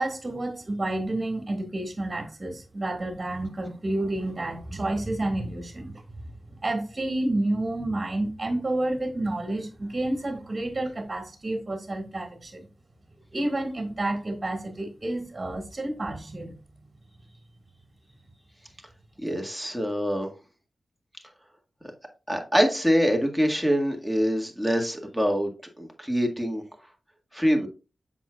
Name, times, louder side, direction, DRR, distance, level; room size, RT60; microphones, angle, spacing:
voice 1, 0.0-5.9 6.6-12.7 13.3-16.6, right 1 dB, 35° right, 1.9 m, -30 dB
voice 2, 19.2-20.3 22.3-25.5 25.8-26.6 27.3-27.7, equal, ahead, 1.9 m, -24 dB
7.6 x 6.1 x 2.4 m
cardioid pair, 55°, 0 cm